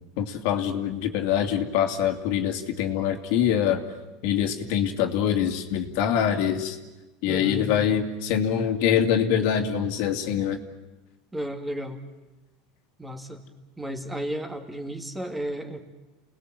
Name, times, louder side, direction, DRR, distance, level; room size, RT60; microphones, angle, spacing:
voice 1, 0.2-3.8 4.2-6.8 7.2-10.6, left 9 dB, 65° left, 5 dB, 2.5 m, -24 dB
voice 2, 7.3-7.7 11.3-12.0 13.0-13.4 13.8-15.8, right 1 dB, 10° right, 4 dB, 2.5 m, -33 dB
29.5 x 19.5 x 7.8 m, 1.1 s
supercardioid pair, 120°, 0 cm